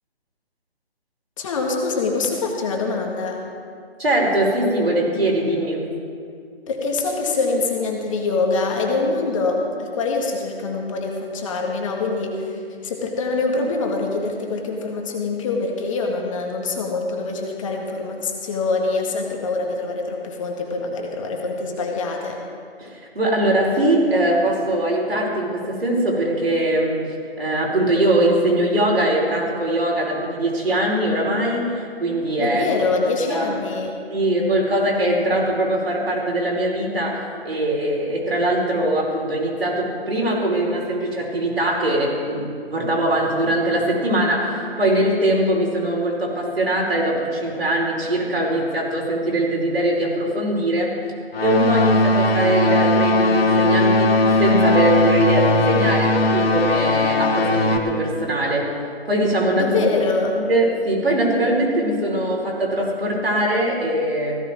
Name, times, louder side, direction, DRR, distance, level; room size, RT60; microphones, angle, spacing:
voice 1, 1.4-3.4 6.7-22.4 32.4-34.0 59.6-60.4, left 3 dB, 30° left, 1 dB, 1.9 m, -24 dB
voice 2, 4.0-5.9 22.8-27.0 27.4-32.6 33.3-33.5 34.1-50.9 51.4-54.1 54.4-58.7 59.1-59.8 60.5-64.4, right 1 dB, 70° right, -2 dB, 5.1 m, -21 dB
sound 1, 51.3-57.8, left 2 dB, 70° left, 1.7 m, -18 dB
16.5 x 15.5 x 4.6 m, 2.2 s
figure-of-eight pair, 145°, 31 cm